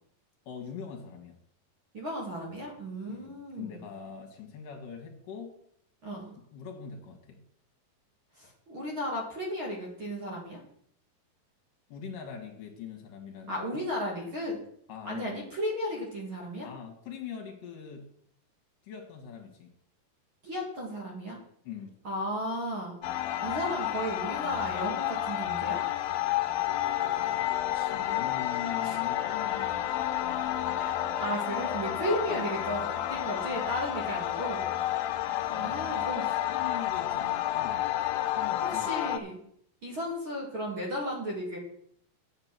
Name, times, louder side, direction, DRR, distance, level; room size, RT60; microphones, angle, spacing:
voice 1, 0.5-1.4 3.1-5.6 6.1-7.4 11.9-13.7 14.9-15.3 16.6-18.1 18.8-19.7 21.6-21.9 27.1-27.4 27.7-30.1 35.5-37.9 38.3-38.9, left 7 dB, 70° left, 2 dB, 3.1 m, -43 dB
voice 2, 1.9-3.8 6.0-6.3 8.4-10.6 13.5-14.6 15.1-16.7 20.4-21.4 22.0-23.0 23.4-25.8 28.8-29.0 30.8-34.7 35.6-36.3 38.6-39.4 39.8-41.6, equal, 40° right, -2 dB, 2.5 m, -34 dB
sound 1, 23.0-39.2, left 13 dB, 85° left, 2.4 m, -30 dB
Singing / Musical instrument, 27.9-33.5, right 3 dB, 70° right, 4.1 m, -50 dB
8.8 x 7.9 x 6.0 m, 0.66 s
omnidirectional pair, 4.1 m